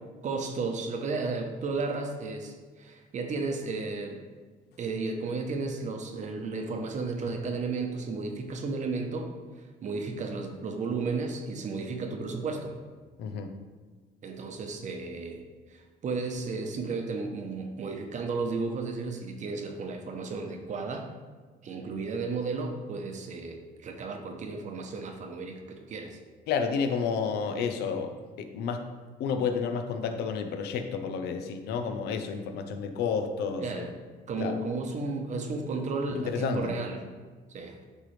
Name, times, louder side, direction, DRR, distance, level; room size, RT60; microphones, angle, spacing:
voice 1, 0.2-4.2 4.8-9.3 9.8-12.8 14.2-15.4 15.7-21.1 21.6-26.2 33.6-33.9 34.3-37.1 37.5-37.8, right 3 dB, 45° right, 4 dB, 0.9 m, -33 dB
voice 2, 13.2-13.5 26.5-28.9 29.2-33.9 34.4-34.5 36.1-36.7, left 6 dB, 75° left, 7 dB, 0.6 m, -31 dB
9.9 x 3.3 x 3.3 m, 1.4 s
cardioid pair, 110°, 17 cm